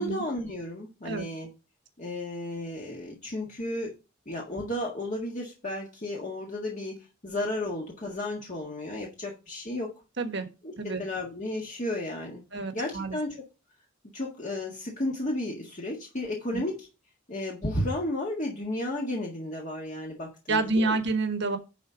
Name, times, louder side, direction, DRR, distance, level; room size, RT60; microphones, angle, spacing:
voice 1, 0.0-1.5 2.0-3.9 4.3-9.9 10.6-12.4 12.7-13.4 14.1-16.9 17.3-21.0, left 1 dB, 40° left, -2 dB, 1.7 m, -33 dB
voice 2, 12.5-13.2 16.5-16.6 20.5-21.6, right 3 dB, 55° right, 7 dB, 1.3 m, -28 dB
10.5 x 4.1 x 5.0 m, 0.29 s
head